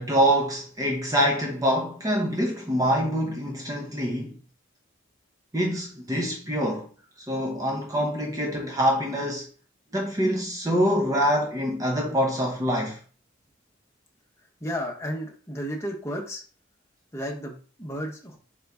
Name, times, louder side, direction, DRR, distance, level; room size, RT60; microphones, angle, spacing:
voice 1, 0.0-4.3 5.5-6.9 7.3-9.5 9.9-13.0, equal, 20° right, 0.7 m, -25 dB
voice 2, 14.6-16.4 17.1-18.4, equal, 15° left, 1.0 m, -33 dB
3.8 x 3.8 x 3.5 m
head